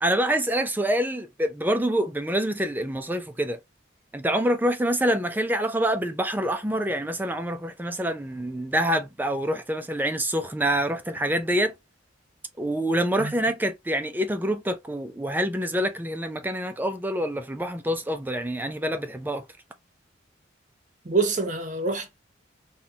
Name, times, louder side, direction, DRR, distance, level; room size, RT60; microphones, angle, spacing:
voice 1, 0.0-3.6 4.1-11.7 12.6-19.4, right 1 dB, 10° right, 0.4 m, -26 dB
voice 2, 21.0-22.2, right 4 dB, 40° right, 0.7 m, -26 dB
3.9 x 2.3 x 2.8 m
head